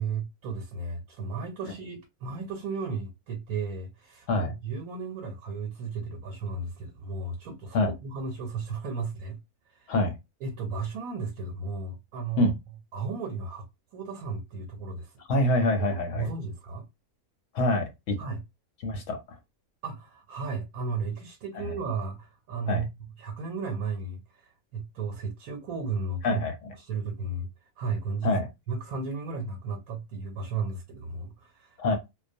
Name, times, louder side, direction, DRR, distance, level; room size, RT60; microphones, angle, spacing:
voice 1, 0.0-9.4 9.7-9.9 10.4-12.5 12.9-13.6 13.9-15.1 16.1-16.8 18.2-18.4 19.8-22.9 23.2-26.4 26.8-27.5 27.8-28.4 28.7-32.0, right 4 dB, 85° right, 1.1 m, -34 dB
voice 2, 15.3-16.3 17.5-18.2 18.8-19.2 22.7-22.8 26.2-26.7 28.2-28.5 31.8-32.0, left 2 dB, 65° left, 0.8 m, -25 dB
2.3 x 2.1 x 2.5 m
omnidirectional pair, 1.5 m